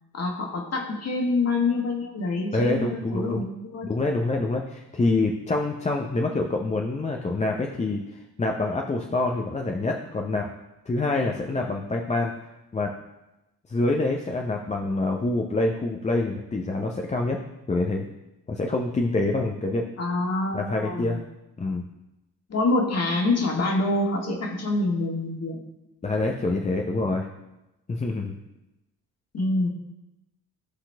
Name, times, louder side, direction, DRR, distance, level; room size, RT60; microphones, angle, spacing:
voice 1, 0.1-3.9 20.0-21.1 22.5-25.7 29.3-29.7, left 2 dB, 30° left, 1 dB, 1.8 m, -26 dB
voice 2, 2.5-3.4 3.8-8.0 8.4-10.5 10.9-12.3 12.7-12.9 13.7-17.4 17.7-18.1 18.5-19.9 20.5-21.2 21.6-21.8 26.0-27.3 27.9-28.3, left 2 dB, 15° left, 1 dB, 0.7 m, -26 dB
14.5 x 5.7 x 2.3 m, 0.94 s
figure-of-eight pair, 45°, 48 cm